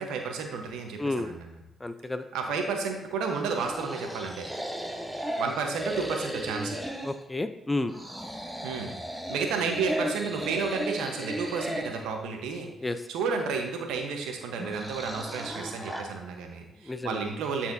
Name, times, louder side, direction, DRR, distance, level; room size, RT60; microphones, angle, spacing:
voice 1, 0.0-1.6 2.3-4.5 5.4-6.8 8.6-17.7, right 5 dB, 85° right, 3 dB, 0.9 m, -32 dB
voice 2, 1.8-2.2 7.1-7.9 12.8-13.0 16.9-17.2, left 2 dB, 20° left, 11 dB, 0.5 m, -30 dB
sound 1, 3.6-7.2 7.9-12.1 14.6-16.0, equal, 10° right, 0.9 m, -35 dB
9.5 x 4.2 x 2.6 m, 0.88 s
supercardioid pair, 55°, 0 cm